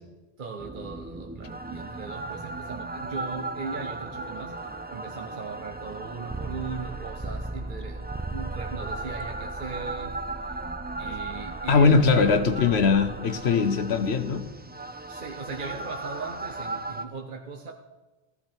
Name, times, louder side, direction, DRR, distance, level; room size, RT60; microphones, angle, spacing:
voice 1, 0.4-10.2 10.5-10.6 11.0-12.3 15.1-17.7, right 5 dB, 50° right, 3 dB, 0.9 m, -38 dB
sound 1, 0.6-17.1, right 2 dB, 15° right, 0.3 m, -36 dB
voice 2, 11.7-14.5, left 5 dB, 70° left, 10 dB, 1.1 m, -21 dB
15.5 x 13.5 x 4.5 m, 1.2 s
omnidirectional pair, 1.1 m